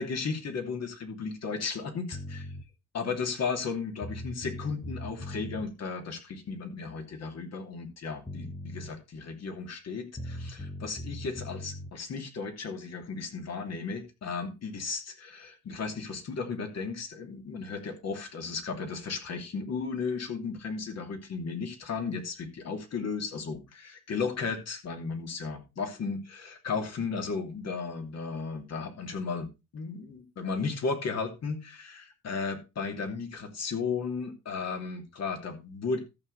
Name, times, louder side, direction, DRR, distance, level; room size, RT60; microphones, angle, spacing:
voice 1, 0.0-2.5 2.9-36.0, left 5 dB, 60° left, 5 dB, 2.8 m, -35 dB
sound 1, 2.1-2.6 3.7-3.8 4.0-5.7 7.9-8.0 8.3-8.9 10.2-11.9, left 1 dB, 15° left, 1.3 m, -39 dB
14.0 x 6.6 x 4.0 m, 0.26 s
cardioid pair, 90°, 30 cm